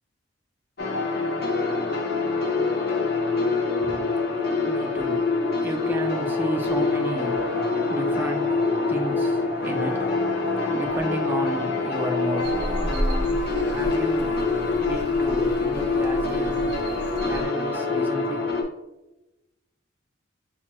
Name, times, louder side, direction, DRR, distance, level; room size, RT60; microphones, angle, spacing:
sound 1, 0.8-18.6, left 3 dB, 55° left, 0.6 m, -25 dB
voice 1, 3.8-18.6, equal, 10° right, 0.5 m, -34 dB
sound 2, 5.9-12.8, equal, 85° left, 1.2 m, -35 dB
sound 3, 12.4-17.4, equal, 60° right, 0.5 m, -32 dB
5.8 x 2.2 x 2.9 m
head